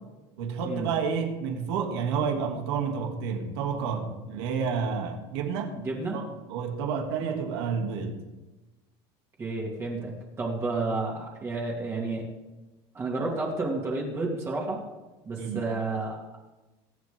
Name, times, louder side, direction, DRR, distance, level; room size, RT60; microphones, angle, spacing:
voice 1, 0.4-5.7 6.1-6.2 6.5-8.2 15.4-15.6, right 6 dB, 85° right, 2 dB, 2.8 m, -30 dB
voice 2, 5.7-6.2 9.4-10.1 10.4-12.3 12.9-14.8 15.3-16.4, right 3 dB, 20° right, -3 dB, 2.5 m, -31 dB
22.5 x 9.3 x 3.8 m, 1.1 s
cardioid pair, 155°, 13 cm